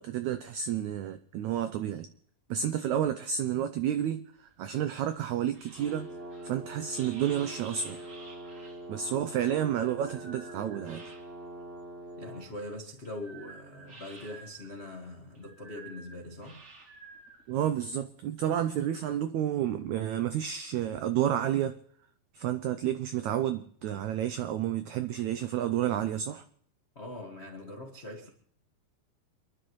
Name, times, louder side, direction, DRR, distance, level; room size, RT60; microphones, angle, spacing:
voice 1, 0.0-2.1 2.5-6.1 6.4-8.0 8.9-11.0 17.5-21.8 22.3-26.4, right 10 dB, 90° right, 1.6 m, -30 dB
sound 1, 4.4-11.6 12.0-17.8, right 3 dB, 35° right, 2.0 m, -52 dB
sound 2, 5.8-12.5, right 1 dB, 70° right, 8.9 m, -44 dB
voice 2, 12.2-16.6 26.9-28.3, left 1 dB, 65° left, 0.6 m, -42 dB
28.0 x 11.0 x 3.1 m
omnidirectional pair, 4.1 m